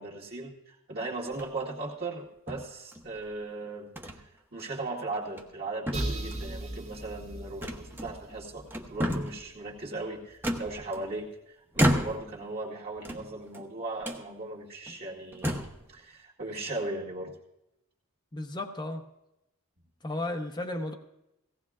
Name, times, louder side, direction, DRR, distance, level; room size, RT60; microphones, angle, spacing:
voice 1, 0.0-17.3, right 2 dB, 45° right, -4 dB, 2.2 m, -38 dB
sound 1, 1.2-1.7 2.5-3.2 4.0-4.2 4.6-4.7 5.2-5.6 5.9-6.6 7.6-8.3 8.7-9.5 10.4-11.3 11.7-12.4 13.0-13.6 14.0-14.2 14.9-15.0 15.3-15.8, equal, 10° right, 1.0 m, -31 dB
sound 2, 5.9-9.6, right 1 dB, 25° right, 1.6 m, -38 dB
voice 2, 18.3-19.0 20.0-20.9, left 2 dB, 20° left, 3 dB, 0.8 m, -34 dB
17.0 x 17.0 x 2.4 m, 0.87 s
head